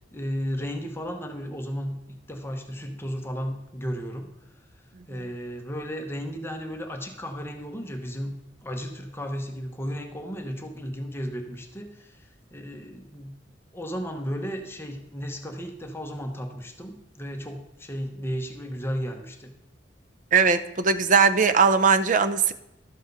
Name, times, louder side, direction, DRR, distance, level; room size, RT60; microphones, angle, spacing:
voice 1, 0.0-4.3 5.1-8.3 8.6-13.3 13.7-19.5, equal, 15° left, 3 dB, 0.9 m, -34 dB
voice 2, 20.3-22.5, right 5 dB, 45° right, 12 dB, 0.5 m, -19 dB
12.0 x 7.4 x 3.9 m, 0.88 s
head